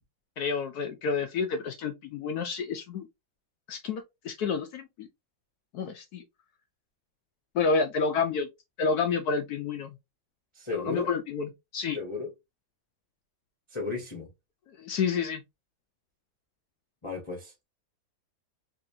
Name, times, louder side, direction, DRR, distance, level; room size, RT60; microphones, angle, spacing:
voice 1, 0.4-3.1 3.7-5.1 5.7-6.2 7.5-8.5 8.8-9.9 10.7-12.0 14.8-15.4, left 5 dB, 75° left, 0.8 m, -29 dB
voice 2, 10.5-11.1 11.9-12.3 13.7-14.3 17.0-17.6, left 3 dB, 25° left, 0.6 m, -34 dB
4.2 x 2.7 x 2.6 m
omnidirectional pair, 2.2 m